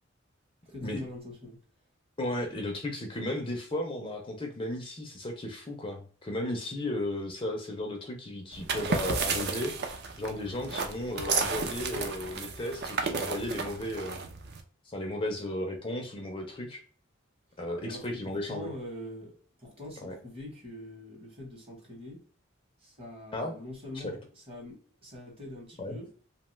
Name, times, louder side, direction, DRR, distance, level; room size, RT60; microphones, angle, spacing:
voice 1, 0.7-1.6 17.9-22.2 22.8-24.2 24.5-26.1, left 1 dB, 30° right, 1.0 m, -44 dB
voice 2, 2.2-9.8 10.2-14.2 14.8-16.8 17.6-18.7 20.0-20.1 23.3-23.6 23.9-24.1 25.8-26.0, left 1 dB, 25° left, 0.4 m, -35 dB
sound 1, 8.5-14.6, right 4 dB, 50° right, 0.4 m, -33 dB
2.7 x 2.2 x 3.0 m
head